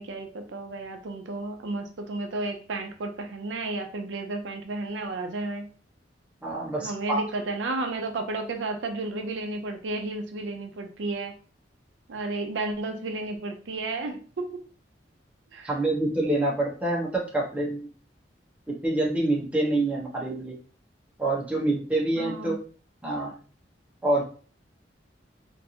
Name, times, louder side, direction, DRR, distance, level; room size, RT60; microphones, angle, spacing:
voice 1, 0.0-5.6 6.8-11.3 12.1-14.6 15.5-15.7 22.2-22.6, right 2 dB, 85° right, 5 dB, 0.5 m, -32 dB
voice 2, 6.4-7.2 15.6-17.9 18.8-20.6 21.2-22.6 23.0-23.3 24.0-24.2, right 2 dB, 5° right, -4 dB, 0.9 m, -26 dB
3.3 x 2.6 x 2.8 m, 0.40 s
head